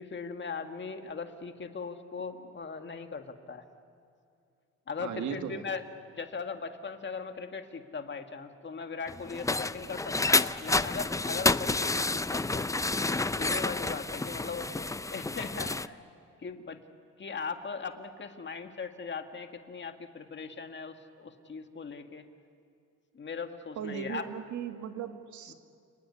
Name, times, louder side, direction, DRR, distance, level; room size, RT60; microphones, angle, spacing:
voice 1, 0.0-3.6 4.9-5.9 6.1-12.7 13.4-14.7 15.1-16.0 16.4-16.8 17.2-22.3 23.1-24.3 25.5-25.6, left 5 dB, 40° left, 6 dB, 1.9 m, -39 dB
voice 2, 5.0-5.6 11.7-11.8 23.8-25.5, right 8 dB, 75° right, 7 dB, 1.9 m, -37 dB
sound 1, 9.1-15.9, left 2 dB, 10° left, 0.6 m, -29 dB
29.5 x 19.5 x 9.8 m, 2.5 s
cardioid pair, 90°, 30 cm